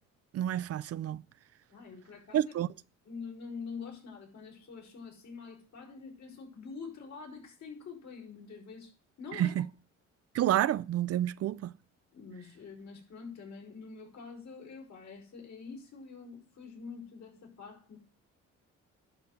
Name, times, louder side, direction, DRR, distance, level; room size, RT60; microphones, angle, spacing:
voice 1, 0.3-1.2 2.3-2.7 9.3-9.7 10.3-11.7, right 12 dB, 55° right, 0.4 m, -29 dB
voice 2, 1.7-2.5 3.1-8.9 9.2-9.6 12.1-18.0, left 5 dB, 65° left, 5.3 m, -46 dB
11.0 x 4.2 x 8.0 m
cardioid pair, 90°, 30 cm